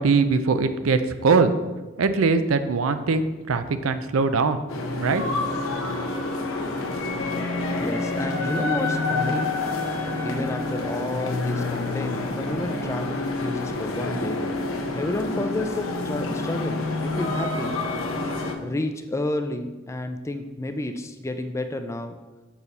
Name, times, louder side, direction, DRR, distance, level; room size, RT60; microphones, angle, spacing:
voice 1, 0.0-1.5 2.0-4.6 4.9-5.2, right 4 dB, 90° right, 10 dB, 0.5 m, -21 dB
sound 1, 4.7-18.5, left 2 dB, 80° left, 0.9 m, -28 dB
voice 2, 7.8-9.6 10.2-17.7 18.6-22.2, left 1 dB, 15° left, 8 dB, 0.3 m, -31 dB
7.1 x 5.6 x 4.1 m, 1.2 s
head